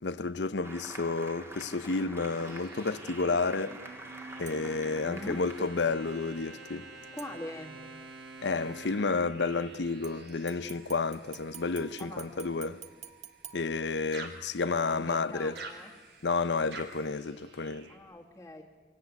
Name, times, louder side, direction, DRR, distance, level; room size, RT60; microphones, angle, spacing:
voice 1, 0.0-3.8 4.4-6.9 8.4-12.8 13.5-15.6 16.2-17.9, left 4 dB, 80° left, 0.7 m, -31 dB
Applause, 0.6-7.8, right 1 dB, 15° right, 2.3 m, -48 dB
sound 1, 2.3-13.8 14.1-18.0, right 3 dB, 70° right, 4.0 m, -48 dB
sound 2, 4.5-4.9 7.2-7.9 10.0-14.4 14.9-15.0, right 9 dB, 40° right, 1.5 m, -51 dB
voice 2, 5.0-5.4 7.1-7.7 12.1-12.3 14.9-15.9 17.9-18.6, left 1 dB, 10° left, 2.1 m, -42 dB
24.5 x 17.5 x 9.5 m
head